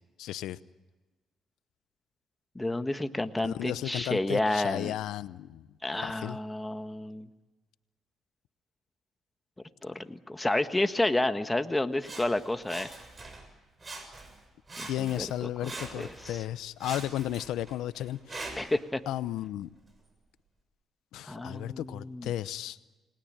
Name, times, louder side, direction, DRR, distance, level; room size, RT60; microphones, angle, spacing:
voice 1, 0.2-0.6 3.4-5.7 6.0-6.4 14.8-18.5 19.1-19.7 21.1-22.8, left 13 dB, 85° left, 15 dB, 0.8 m, -34 dB
voice 2, 2.5-5.0 5.8-7.3 9.8-12.9 14.8-15.5 15.9-16.4 18.5-19.0 21.3-22.3, left 2 dB, 15° left, 9 dB, 1.5 m, -30 dB
Sawing, 12.0-13.5 13.8-14.4 14.7-16.4 16.8-18.8 19.5-19.6, right 2 dB, 30° right, 6.6 m, -43 dB
29.5 x 20.5 x 8.9 m, 1.2 s
cardioid pair, 90°, 0 cm